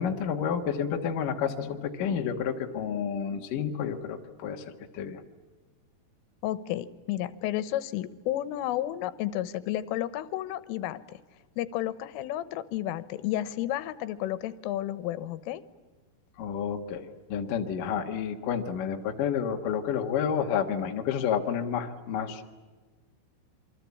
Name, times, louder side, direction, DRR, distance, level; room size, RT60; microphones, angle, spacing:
voice 1, 0.0-4.6 4.9-5.2 16.4-22.4, left 7 dB, 55° left, 3 dB, 2.6 m, -30 dB
voice 2, 6.4-11.2 11.6-15.6, left 13 dB, 90° left, 15 dB, 3.6 m, -32 dB
28.0 x 24.5 x 8.5 m, 1.4 s
omnidirectional pair, 5.6 m